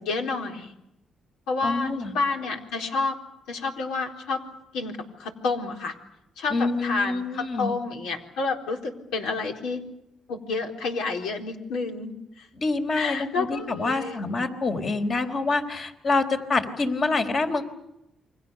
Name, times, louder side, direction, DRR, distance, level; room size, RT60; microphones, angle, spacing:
voice 1, 0.1-0.7 1.5-3.2 3.5-4.4 4.7-5.9 6.4-9.8 10.3-12.5 13.0-14.2, left 4 dB, 90° left, 3 dB, 4.0 m, -29 dB
voice 2, 1.6-2.1 6.5-7.7 12.6-17.7, left 3 dB, 50° left, 5 dB, 4.4 m, -26 dB
29.5 x 24.5 x 6.9 m, 0.85 s
cardioid pair, 90°, 0 cm